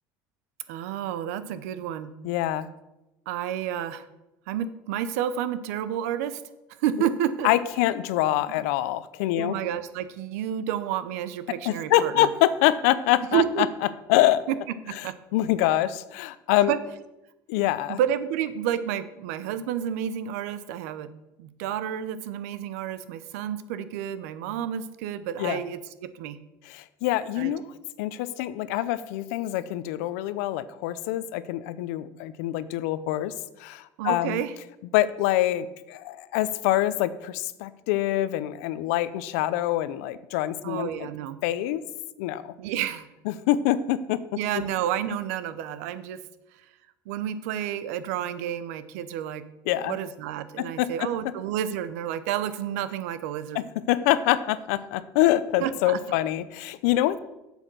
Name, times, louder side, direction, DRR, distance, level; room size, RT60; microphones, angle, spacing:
voice 1, 0.7-2.1 3.3-4.0 4.5-6.4 6.8-7.5 8.5-8.6 9.4-12.3 13.3-13.7 14.9-15.1 16.7-16.8 17.9-21.1 21.4-25.8 26.1-26.4 27.4-27.5 34.0-34.5 40.6-41.4 42.6-43.1 44.3-46.2 47.1-49.4 49.9-53.6 55.6-56.0, right 10 dB, 90° right, 13 dB, 0.7 m, -30 dB
voice 2, 2.2-2.7 7.4-9.6 11.6-13.7 14.1-14.4 14.9-15.0 15.3-16.7 17.5-18.0 25.4-25.6 26.6-27.6 28.0-33.3 33.6-34.4 34.9-41.1 41.4-41.8 42.2-42.5 43.3-44.2 49.7-50.0 50.6-51.1 53.5-57.2, left 14 dB, 85° left, 15 dB, 0.6 m, -25 dB
7.9 x 7.1 x 6.1 m, 0.95 s
supercardioid pair, 120°, 8 cm